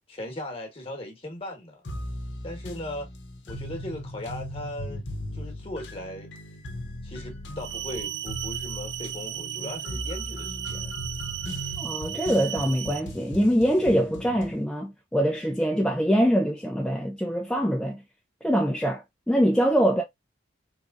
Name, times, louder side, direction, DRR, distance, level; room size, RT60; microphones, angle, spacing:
voice 1, 0.1-1.8 2.4-3.1 3.5-5.1 5.3-6.3 7.0-10.9, left 1 dB, 30° left, 1.2 m, -38 dB
sound 1, 1.8-14.6, equal, 75° left, 0.8 m, -38 dB
sound 2, 7.6-13.0, right 12 dB, 60° right, 0.5 m, -35 dB
voice 2, 11.8-18.0 18.4-20.0, equal, 5° left, 0.4 m, -24 dB
3.7 x 3.0 x 2.5 m
head